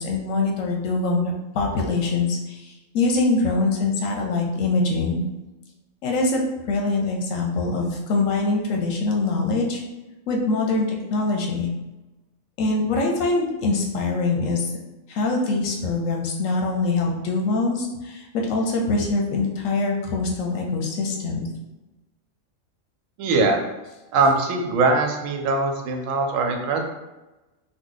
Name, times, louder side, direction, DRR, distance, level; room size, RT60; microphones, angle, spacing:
voice 1, 0.0-5.2 6.0-6.4 6.7-9.8 10.3-11.7 12.6-14.7 15.1-21.5, left 3 dB, 80° left, 0 dB, 1.0 m, -23 dB
voice 2, 23.2-23.6 24.1-26.8, right 3 dB, 90° right, 3 dB, 1.0 m, -21 dB
2.9 x 2.1 x 3.8 m, 1.1 s
omnidirectional pair, 1.3 m